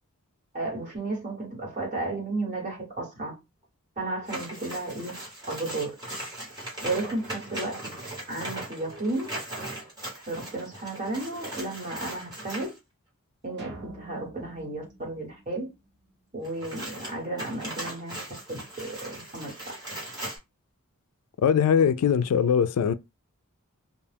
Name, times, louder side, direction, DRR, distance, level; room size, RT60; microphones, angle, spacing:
voice 1, 0.5-3.4 4.0-5.2 5.5-5.9 6.8-7.7 8.3-9.3 10.3-12.7 13.4-15.7 16.3-18.2 18.5-19.5, right 2 dB, 35° right, 1.4 m, -33 dB
sound 1, 4.2-12.8 16.4-20.4, right 1 dB, 20° right, 1.1 m, -39 dB
sound 2, 13.6-16.1, right 2 dB, 50° right, 0.7 m, -46 dB
voice 2, 21.4-22.9, left 7 dB, 80° left, 0.3 m, -21 dB
2.3 x 2.2 x 3.3 m
head